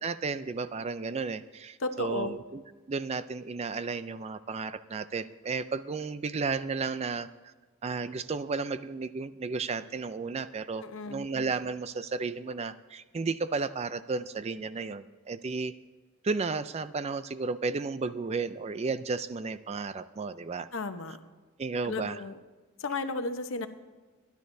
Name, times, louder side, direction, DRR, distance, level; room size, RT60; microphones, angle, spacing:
voice 1, 0.0-2.6 2.9-7.5 7.8-15.7 16.2-20.7 21.6-22.2, right 4 dB, 30° right, 13 dB, 0.4 m, -33 dB
voice 2, 1.8-2.4 10.8-11.3 20.7-21.2 21.8-22.4 22.8-23.7, left 3 dB, 70° left, 8 dB, 0.9 m, -34 dB
25.5 x 10.5 x 2.7 m, 1.3 s
head